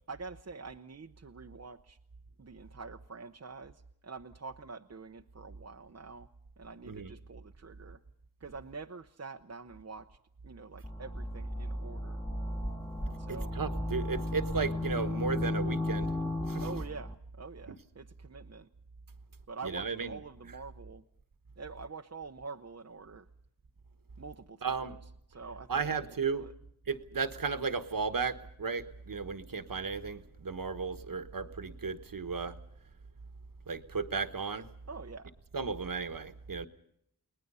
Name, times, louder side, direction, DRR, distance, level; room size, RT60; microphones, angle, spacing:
voice 1, 0.1-2.0 2.4-6.3 6.6-8.0 8.4-10.2 10.4-12.2 13.1-13.6 16.6-18.7 19.5-21.0 21.6-23.3 24.2-24.8 25.3-25.9 26.3-26.5 34.9-35.3, right 4 dB, 40° right, 4 dB, 0.8 m, -46 dB
sound 1, 10.8-17.1, left 1 dB, 15° left, 1.6 m, -34 dB
voice 2, 13.5-16.1 16.5-16.7 17.7-17.8 19.6-20.1 24.6-24.9 25.7-26.5 26.9-32.6 33.7-34.7 35.5-36.7, right 5 dB, 55° right, 10 dB, 1.4 m, -34 dB
30.0 x 20.0 x 5.6 m, 0.72 s
wide cardioid pair, 90°, 39 cm